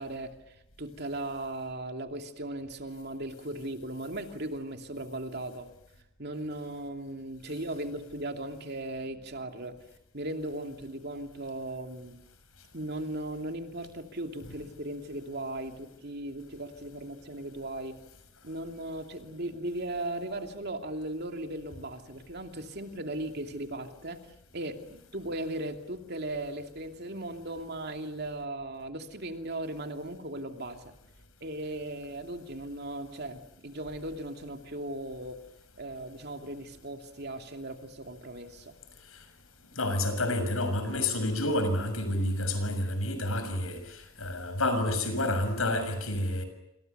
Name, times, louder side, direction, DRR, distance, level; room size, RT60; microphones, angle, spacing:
voice 1, 0.0-5.7 6.2-9.8 10.1-12.2 12.7-18.0 18.4-24.2 24.5-30.9 31.4-35.4 35.7-38.7, right 1 dB, 50° right, 2.8 m, -37 dB
voice 2, 39.7-46.4, left 1 dB, 85° left, 6.7 m, -29 dB
28.0 x 27.0 x 6.9 m
head